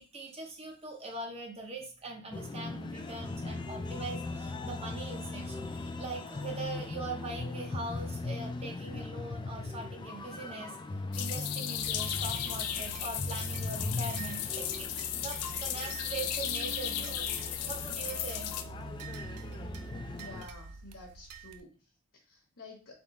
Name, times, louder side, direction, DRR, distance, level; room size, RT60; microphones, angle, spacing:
voice 1, 0.0-10.7 11.2-14.9 15.1-17.3 17.7-18.5, right 3 dB, 25° right, 1 dB, 0.6 m, -42 dB
sound 1, 2.3-20.5, left 3 dB, 20° left, 0.3 m, -39 dB
sound 2, 11.1-18.6, left 10 dB, 90° left, 0.4 m, -35 dB
sound 3, 11.8-21.6, right 4 dB, 90° right, 0.5 m, -46 dB
voice 2, 20.1-23.0, left 2 dB, 55° left, 0 dB, 0.9 m, -51 dB
3.5 x 3.0 x 4.1 m, 0.34 s
head